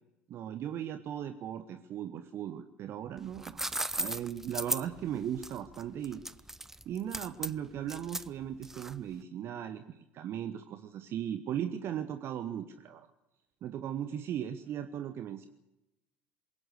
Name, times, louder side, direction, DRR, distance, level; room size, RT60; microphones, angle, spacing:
voice 1, 0.3-3.6 3.9-6.2 6.8-13.1 13.6-15.5, right 10 dB, 45° right, 11 dB, 1.1 m, -37 dB
sound 1, 3.2-9.1, right 1 dB, 5° right, 0.7 m, -37 dB
22.0 x 17.5 x 8.1 m, 0.94 s
figure-of-eight pair, 65°, 6 cm